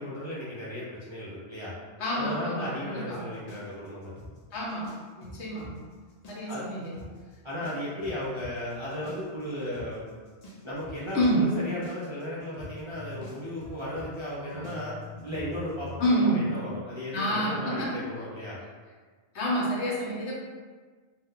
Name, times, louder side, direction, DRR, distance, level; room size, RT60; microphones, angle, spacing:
voice 1, 0.0-1.7 2.1-4.2 6.5-6.6 7.4-10.0 10.6-15.0 15.2-18.6, left 1 dB, 40° right, -10 dB, 0.4 m, -35 dB
voice 2, 2.0-3.3 4.5-5.8 6.3-6.9 11.1-11.5 16.0-16.5 17.1-17.9 19.3-20.3, equal, 75° left, -5 dB, 1.1 m, -28 dB
sound 1, 3.5-5.7 6.1-6.7 6.9-7.1 7.6-16.2, left 1 dB, 50° left, 0.5 m, -44 dB
2.4 x 2.2 x 3.6 m, 1.5 s
omnidirectional pair, 1.2 m